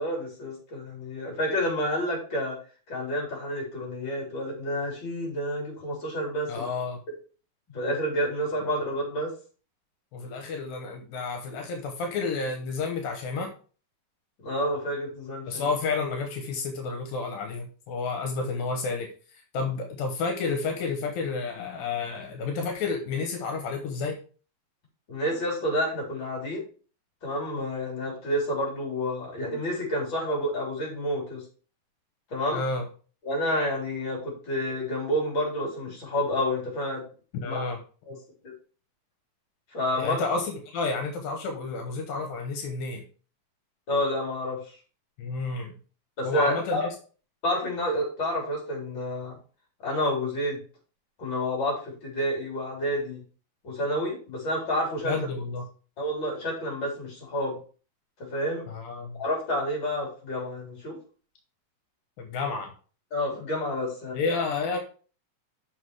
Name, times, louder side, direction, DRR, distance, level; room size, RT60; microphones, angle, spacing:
voice 1, 0.0-2.6 2.9-6.6 7.7-9.3 14.4-15.7 25.1-26.6 27.2-31.4 32.3-32.6 33.2-37.0 37.4-37.5 38.1-38.2 38.4-38.5 39.7-40.2 43.9-44.8 46.2-46.8 47.4-49.3 49.8-50.6 51.2-53.2 53.6-55.1 56.0-57.6 58.3-58.6 59.1-61.0 63.1-64.2, equal, 35° left, -2 dB, 4.0 m, -29 dB
voice 2, 6.5-7.0 10.1-13.5 15.5-24.2 32.5-32.9 37.4-37.8 40.0-43.0 45.2-45.7 46.2-46.9 55.0-55.6 58.7-59.2 62.2-62.7 64.1-64.8, left 4 dB, 80° left, 3 dB, 2.8 m, -30 dB
6.6 x 5.6 x 4.7 m, 0.39 s
omnidirectional pair, 4.1 m